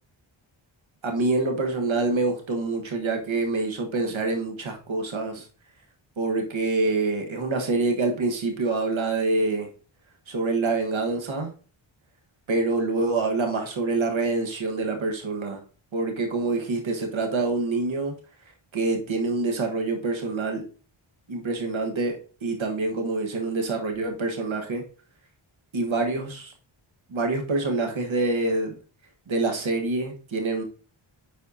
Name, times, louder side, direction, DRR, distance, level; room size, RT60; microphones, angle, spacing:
voice 1, 1.0-5.5 6.2-9.7 10.3-11.5 12.5-15.6 15.9-18.1 18.7-20.6 21.3-24.8 25.7-26.5 27.1-28.7 29.3-30.6, right 3 dB, 70° right, 3 dB, 1.6 m, -26 dB
10.0 x 4.3 x 2.8 m, 0.38 s
cardioid pair, 65°, 50 cm